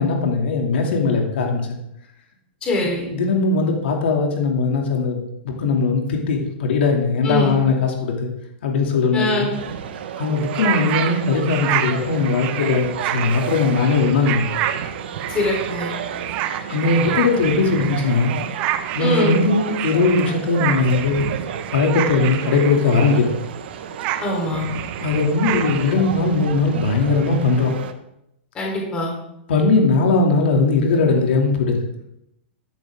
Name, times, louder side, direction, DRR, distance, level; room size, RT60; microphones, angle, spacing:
voice 1, 0.0-1.6 3.1-8.3 8.6-9.5 10.2-14.5 16.7-18.4 18.9-21.3 21.7-23.3 25.0-27.8 29.5-31.8, left 3 dB, 65° left, 1 dB, 2.7 m, -19 dB
voice 2, 2.6-3.1 7.2-7.6 9.1-9.5 15.3-15.9 19.0-19.4 24.2-24.7 28.5-29.1, left 1 dB, 15° left, -1 dB, 3.9 m, -23 dB
sound 1, 9.5-27.9, right 8 dB, 55° right, 1.4 m, -32 dB
sound 2, 10.4-23.4 23.8-25.9, right 12 dB, 25° right, 0.7 m, -28 dB
15.5 x 12.0 x 3.8 m, 0.81 s
supercardioid pair, 175°, 7 cm